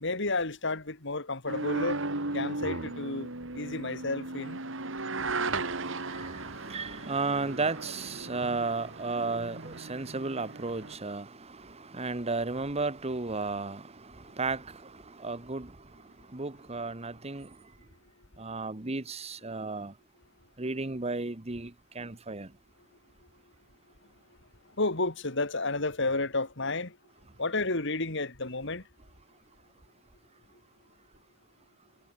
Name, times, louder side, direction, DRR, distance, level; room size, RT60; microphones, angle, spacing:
voice 1, 0.0-2.0 2.3-4.6 24.8-27.0 27.4-28.8, left 3 dB, 65° left, 3.4 m, -31 dB
sound 1, 1.5-11.0, right 3 dB, 70° right, 3.2 m, -36 dB
voice 2, 5.2-16.0 16.3-17.6 18.4-19.9 20.6-22.5, right 3 dB, 30° right, 1.4 m, -34 dB
head